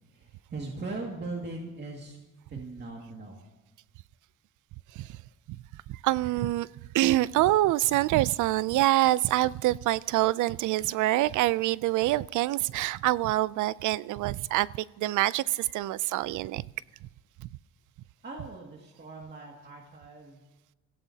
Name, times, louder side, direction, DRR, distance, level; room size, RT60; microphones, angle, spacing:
voice 1, 0.1-2.2 2.5-3.4 18.2-20.4, right 3 dB, 35° right, 0 dB, 2.2 m, -40 dB
voice 2, 5.9-6.7 6.9-14.7 15.0-16.6, right 16 dB, 80° right, 21 dB, 0.4 m, -25 dB
24.5 x 16.5 x 2.8 m, 1.2 s
cardioid pair, 90°, 30 cm